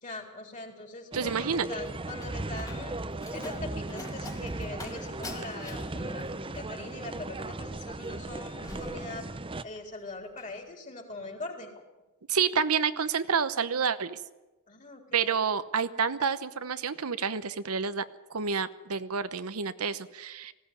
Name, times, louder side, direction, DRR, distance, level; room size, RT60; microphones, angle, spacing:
voice 1, 0.0-3.0 3.3-9.3 9.6-11.7 14.7-15.4, left 2 dB, 35° left, 3 dB, 4.1 m, -42 dB
sound 1, 1.1-9.6, right 2 dB, 25° right, 0.7 m, -37 dB
voice 2, 1.1-1.7 12.3-14.2 15.1-18.0 18.3-20.5, right 6 dB, 80° right, 12 dB, 0.9 m, -29 dB
Slam, 1.4-9.8 10.1-10.6, left 2 dB, 15° left, 2.0 m, -47 dB
19.5 x 16.0 x 9.6 m, 1.1 s
head